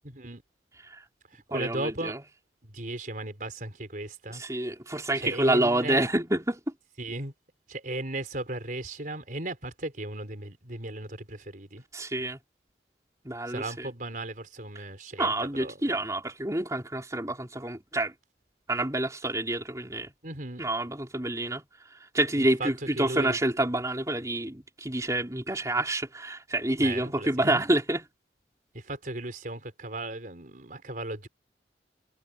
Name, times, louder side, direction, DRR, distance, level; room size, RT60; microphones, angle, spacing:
voice 1, 0.0-0.4 1.3-2.1 2.6-4.4 5.2-6.0 7.0-7.3 7.7-11.8 13.5-15.3 15.6-15.8 20.2-20.6 22.6-22.7 23.0-23.4 26.8-27.6 28.7-31.3, right 2 dB, 50° right, 4.6 m, -36 dB
voice 2, 1.5-2.2 4.3-6.6 11.9-12.4 13.2-13.9 15.2-18.1 18.7-20.1 20.6-28.0, right 1 dB, 20° right, 4.3 m, -28 dB
head